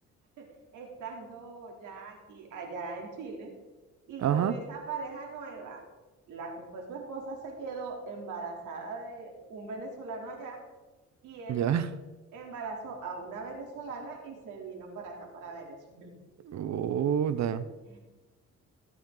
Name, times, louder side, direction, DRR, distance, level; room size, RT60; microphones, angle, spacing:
voice 1, 0.4-3.5 4.1-5.8 6.3-10.6 11.2-11.6 12.3-16.1 17.8-18.0, right 4 dB, 85° right, 0 dB, 3.4 m, -40 dB
voice 2, 4.2-4.5 11.5-11.8 16.4-17.6, right 9 dB, 65° right, 13 dB, 0.9 m, -27 dB
20.5 x 8.5 x 3.9 m, 1.2 s
cardioid pair, 90°, 30 cm